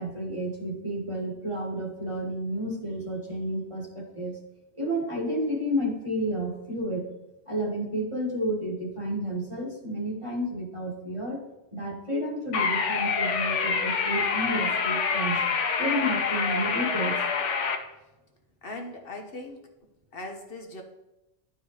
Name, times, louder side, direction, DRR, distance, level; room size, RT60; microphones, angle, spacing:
voice 1, 0.0-4.4 4.8-7.1 7.5-11.4 11.7-15.4 15.8-17.2, equal, 25° right, -3 dB, 1.6 m, -31 dB
sound 1, 12.5-17.8, left 5 dB, 90° left, 1.2 m, -26 dB
voice 2, 18.6-19.7 20.1-20.8, left 2 dB, 55° left, 3 dB, 1.3 m, -39 dB
11.5 x 4.7 x 3.1 m, 0.95 s
omnidirectional pair, 1.2 m